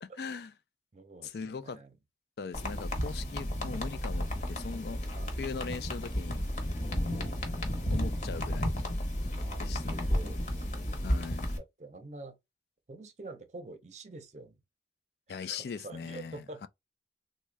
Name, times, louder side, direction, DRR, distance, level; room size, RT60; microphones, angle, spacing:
voice 1, 0.2-0.5 1.2-1.8 2.4-5.0 5.4-6.4 7.9-8.7 9.6-10.1 11.0-11.4 15.3-16.7, left 5 dB, 65° left, 0.3 m, -40 dB
voice 2, 0.9-2.0 5.1-5.3 7.0-7.6 9.3-11.1 11.8-12.4 12.9-14.6 15.4-16.7, right 2 dB, 40° right, 0.6 m, -47 dB
sound 1, 2.5-11.6, equal, 45° left, 0.9 m, -33 dB
3.5 x 2.1 x 3.3 m
head